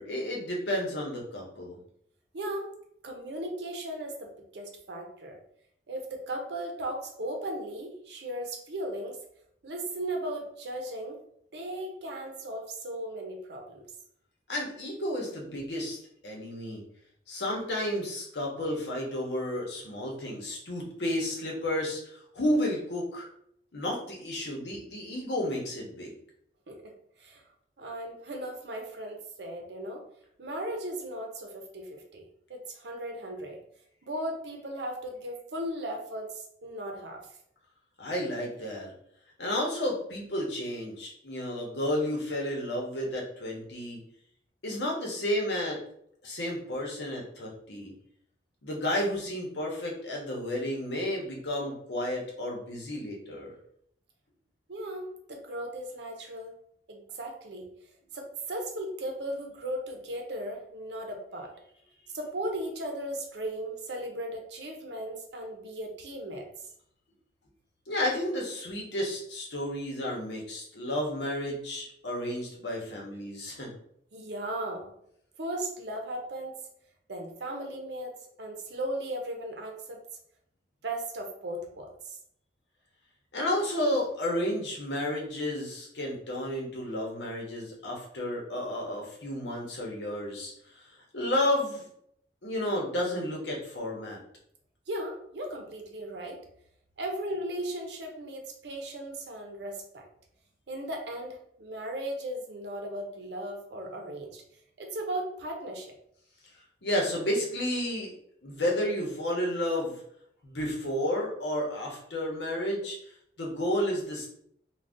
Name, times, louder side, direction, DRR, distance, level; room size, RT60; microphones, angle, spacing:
voice 1, 0.0-1.8 14.5-16.8 17.3-23.3 23.7-26.1 38.0-38.9 39.4-44.0 44.6-45.8 46.2-47.9 48.6-53.5 67.9-73.7 83.3-90.7 91.1-91.9 92.4-94.2 106.8-108.1 108.4-110.0 110.4-113.0 113.4-114.3, left 1 dB, 80° left, -2 dB, 0.9 m, -32 dB
voice 2, 2.3-2.7 3.0-5.4 5.9-9.2 9.6-11.2 11.5-13.9 26.7-26.9 27.2-27.4 27.8-30.0 30.4-32.2 32.5-33.6 34.0-37.2 54.7-56.6 56.9-57.7 58.1-61.5 62.1-66.5 74.1-74.9 75.4-76.6 77.1-80.0 80.8-82.2 94.9-96.4 97.0-100.1 100.7-104.4 104.8-106.0, right 1 dB, 75° right, 2 dB, 0.6 m, -37 dB
2.5 x 2.3 x 3.5 m, 0.69 s
head